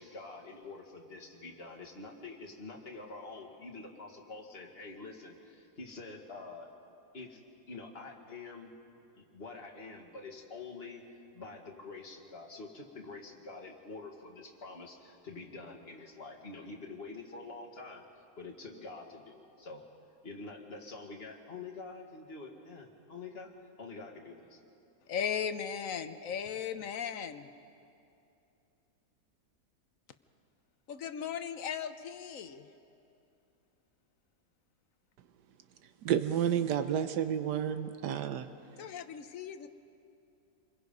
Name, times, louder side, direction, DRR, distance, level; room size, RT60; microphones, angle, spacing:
voice 1, 0.0-5.3 5.8-6.7 7.1-7.4 7.7-8.7 9.2-11.0 11.3-18.0 18.4-19.8 20.2-23.5 23.8-24.4, left 3 dB, 35° left, 1 dB, 2.1 m, -46 dB
voice 2, 25.1-27.5 30.9-32.7 38.8-39.7, left 7 dB, 60° left, 10 dB, 1.1 m, -37 dB
voice 3, 36.0-38.5, right 9 dB, 80° right, 10 dB, 1.4 m, -30 dB
27.5 x 22.5 x 5.4 m, 2.7 s
omnidirectional pair, 1.8 m